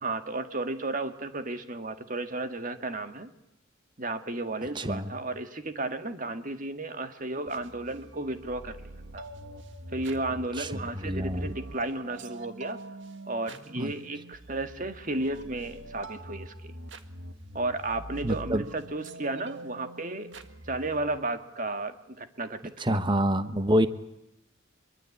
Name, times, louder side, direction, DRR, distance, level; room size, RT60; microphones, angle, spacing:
voice 1, 0.0-3.3 4.0-8.8 9.1-9.3 9.9-12.8 13.3-16.7 17.5-20.3 20.6-23.0, right 2 dB, 40° right, 9 dB, 1.8 m, -33 dB
voice 2, 4.7-5.1 10.6-10.7 10.9-11.5 13.8-13.9 18.2-18.6 22.8-23.9, equal, 20° right, 11 dB, 1.1 m, -26 dB
sound 1, 7.5-21.2, right 2 dB, 60° right, 1.8 m, -44 dB
24.0 x 23.5 x 8.5 m, 0.85 s
head